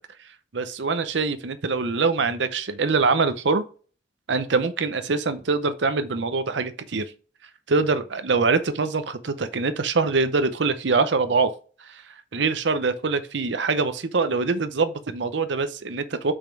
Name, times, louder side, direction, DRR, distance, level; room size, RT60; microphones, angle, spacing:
voice 1, 0.5-3.6 4.3-7.1 7.7-11.5 11.8-16.3, right 4 dB, 65° right, 0.7 m, -24 dB
5.6 x 5.2 x 4.5 m
head